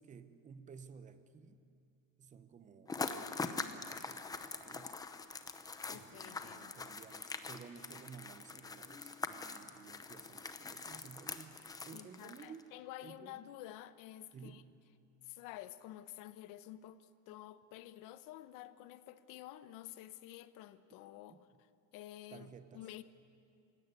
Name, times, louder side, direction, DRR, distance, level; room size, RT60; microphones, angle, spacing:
voice 1, 0.0-1.6 2.2-5.0 5.9-12.7 13.0-13.4 14.3-14.7 21.3-21.4 22.3-22.9, right 6 dB, 20° right, 11 dB, 0.8 m, -55 dB
sound 1, 2.9-12.6, left 4 dB, 10° left, 0.7 m, -43 dB
voice 2, 5.9-6.7 11.9-14.6 15.2-21.4 21.9-23.0, left 14 dB, 60° left, 13 dB, 1.0 m, -51 dB
28.0 x 16.5 x 9.7 m, 2.5 s
cardioid pair, 180°, 36 cm